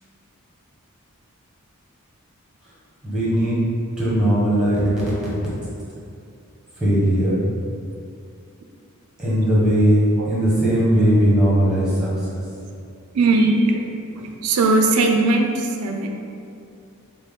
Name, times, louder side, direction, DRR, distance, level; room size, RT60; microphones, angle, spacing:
voice 1, 3.0-3.6 4.0-4.8 6.8-7.4 9.2-12.4, equal, 5° right, -8 dB, 1.2 m, -18 dB
voice 2, 13.1-16.1, right 2 dB, 85° right, 3 dB, 0.4 m, -19 dB
5.5 x 2.2 x 3.6 m, 2.4 s
head